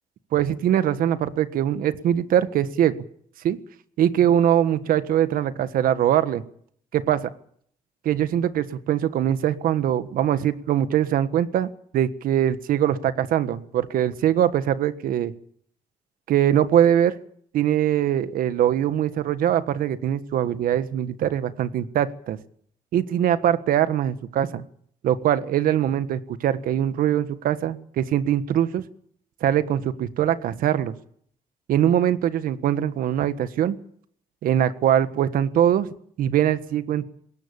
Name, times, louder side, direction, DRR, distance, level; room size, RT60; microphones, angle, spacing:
voice 1, 0.3-3.0 3.4-3.6 4.0-6.4 6.9-7.3 8.0-15.3 16.3-17.2 17.5-22.4 22.9-24.6 25.0-28.8 29.4-30.9 31.7-33.8 34.4-35.9 36.2-37.0, right 10 dB, 85° right, 12 dB, 1.5 m, -22 dB
21.0 x 17.0 x 8.3 m, 0.63 s
cardioid pair, 90°, 14 cm